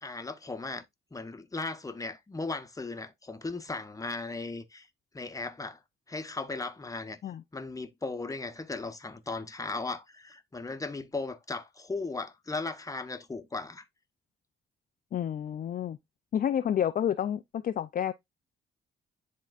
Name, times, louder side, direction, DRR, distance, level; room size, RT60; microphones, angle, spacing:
voice 1, 0.0-0.8 1.1-4.9 5.1-5.8 6.1-7.2 7.5-13.8, left 3 dB, 15° left, 1.0 m, -37 dB
voice 2, 15.1-16.0 16.3-18.1, left 9 dB, 45° left, 0.4 m, -29 dB
10.5 x 3.7 x 2.4 m
cardioid pair, 90°, 20 cm